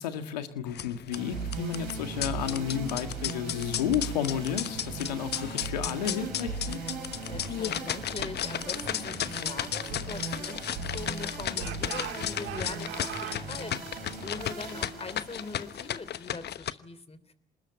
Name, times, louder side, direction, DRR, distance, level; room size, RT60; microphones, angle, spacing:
voice 1, 0.0-6.8, left 9 dB, 90° left, 8 dB, 1.8 m, -32 dB
sound 1, 0.7-16.7, left 10 dB, 55° left, 1.0 m, -35 dB
sound 2, 1.1-16.5, right 4 dB, 85° right, 5.0 m, -39 dB
voice 2, 7.2-17.3, left 4 dB, 30° left, 13 dB, 3.3 m, -42 dB
Speech / Shout, 9.6-11.1 11.5-13.4, right 11 dB, 70° right, 2.3 m, -42 dB
26.5 x 20.5 x 9.0 m, 0.73 s
hypercardioid pair, 50°, 20 cm